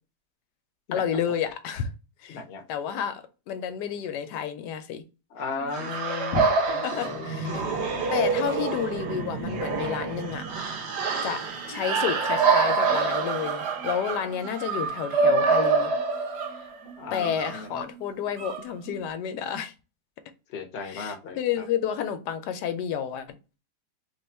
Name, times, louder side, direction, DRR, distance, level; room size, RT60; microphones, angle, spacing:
voice 1, 0.9-1.9 2.2-2.4 2.7-5.0 6.3-7.6 8.1-10.4 11.2-15.9 17.1-19.7 20.8-23.4, left 8 dB, 85° left, 1.2 m, -30 dB
voice 2, 2.3-2.6 5.3-7.8 17.0-17.7 20.5-21.6, left 5 dB, 50° left, 0.8 m, -36 dB
sound 1, 5.6-6.1 6.9-7.2 8.3-9.9 10.3-10.6 11.1-19.1, right 5 dB, 80° right, 1.2 m, -37 dB
sound 2, 5.7-16.8, right 4 dB, 55° right, 0.8 m, -26 dB
3.2 x 2.3 x 4.2 m
omnidirectional pair, 1.8 m